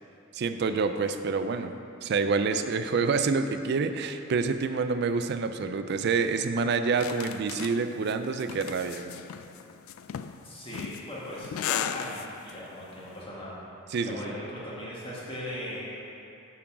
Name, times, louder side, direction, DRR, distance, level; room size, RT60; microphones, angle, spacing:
voice 1, 0.3-1.7 2.0-9.2 13.9-14.3, right 4 dB, 55° right, 9 dB, 0.3 m, -27 dB
sound 1, 7.0-12.5, left 9 dB, 85° left, 0.3 m, -36 dB
voice 2, 10.4-13.6 14.0-15.8, left 1 dB, 25° left, -7 dB, 1.4 m, -38 dB
8.5 x 3.8 x 5.8 m, 2.8 s
head